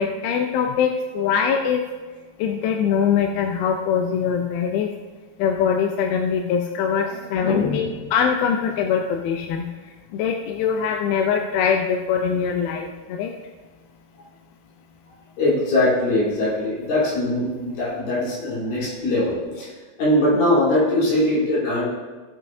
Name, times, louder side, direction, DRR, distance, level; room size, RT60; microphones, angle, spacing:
voice 1, 0.0-1.8 2.4-4.9 5.4-9.7 10.1-13.3, left 7 dB, 80° left, 3 dB, 2.4 m, -22 dB
voice 2, 7.4-8.0 15.4-19.7 20.0-21.8, left 1 dB, 60° left, -8 dB, 5.3 m, -21 dB
18.0 x 7.7 x 2.7 m, 1.3 s
omnidirectional pair, 4.7 m